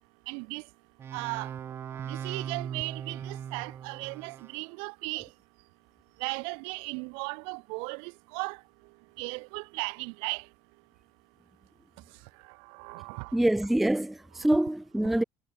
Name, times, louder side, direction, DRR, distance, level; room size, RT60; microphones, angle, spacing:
voice 1, 0.3-0.6 1.1-1.5 2.1-5.3 6.2-8.6 9.2-10.5 12.7-13.4, right 37 dB, 65° right, 0.8 m, -36 dB
sound 1, 1.0-4.6, right 9 dB, 25° right, 1.4 m, -39 dB
voice 2, 13.3-15.2, right 1 dB, ahead, 0.4 m, -25 dB
cardioid pair, 175°, 10 cm